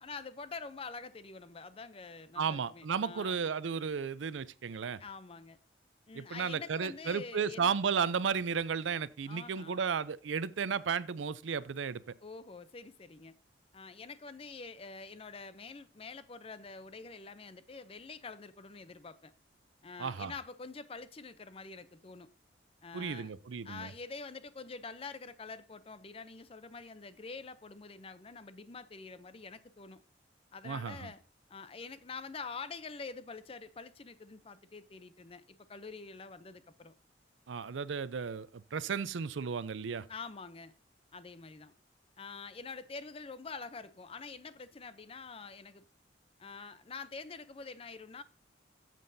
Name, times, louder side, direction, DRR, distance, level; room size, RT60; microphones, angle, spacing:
voice 1, 0.0-3.4 5.0-5.6 6.1-7.7 9.3-9.8 12.2-13.3 13.7-19.3 19.8-22.3 22.8-23.3 23.6-30.0 30.5-31.2 31.5-36.9 40.1-40.7 41.1-41.7 42.2-45.8 46.4-48.2, left 4 dB, 30° left, 0.5 m, -46 dB
voice 2, 2.4-5.0 6.1-12.0 20.0-20.3 22.9-23.9 30.6-31.1 37.5-40.1, right 6 dB, 90° right, 0.5 m, -34 dB
14.0 x 7.5 x 2.7 m
head